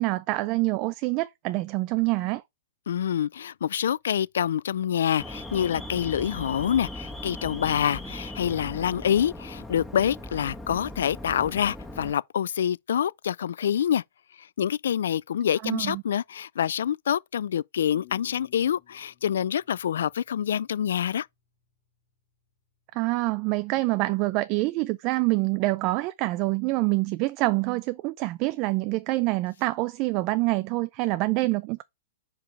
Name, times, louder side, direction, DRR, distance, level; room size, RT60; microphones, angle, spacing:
voice 1, 0.0-2.4 15.6-16.0 22.9-31.8, right 21 dB, 35° right, 0.4 m, -26 dB
voice 2, 2.9-14.0 14.4-21.3, left 9 dB, 75° left, 0.3 m, -26 dB
Alarm, 5.2-12.1, left 1 dB, 5° left, 1.6 m, -39 dB
sound 1, 17.9-20.9, left 17 dB, 50° left, 1.8 m, -54 dB
5.0 x 4.7 x 4.8 m
hypercardioid pair, 140°, 0 cm